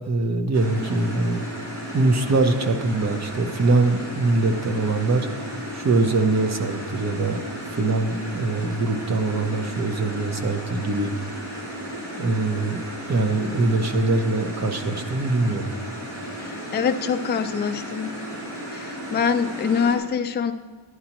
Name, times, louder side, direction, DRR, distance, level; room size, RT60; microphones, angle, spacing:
voice 1, 0.1-1.4 1.9-5.3 5.7-7.4 7.8-11.1 12.2-12.8 13.1-15.7, right 3 dB, 40° right, 7 dB, 0.7 m, -23 dB
sound 1, 0.5-20.0, equal, 65° right, 2.5 m, -34 dB
voice 2, 16.4-18.2 18.7-20.5, left 6 dB, 25° left, 6 dB, 0.3 m, -25 dB
11.0 x 11.0 x 2.9 m, 1.5 s
wide cardioid pair, 165°, 43 cm